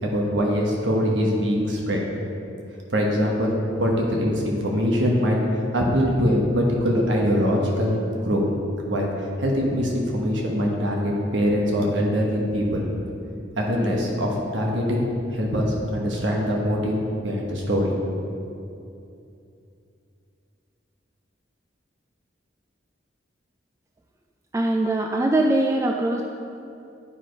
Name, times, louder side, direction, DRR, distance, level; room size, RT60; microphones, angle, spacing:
voice 1, 0.0-2.0 2.9-3.5 3.8-5.4 5.7-8.0 8.2-8.4 8.9-12.8 13.6-17.9, equal, 75° right, -1 dB, 1.1 m, -23 dB
voice 2, 24.5-26.2, right 2 dB, 15° right, 2 dB, 0.3 m, -22 dB
9.8 x 4.9 x 5.2 m, 2.7 s
head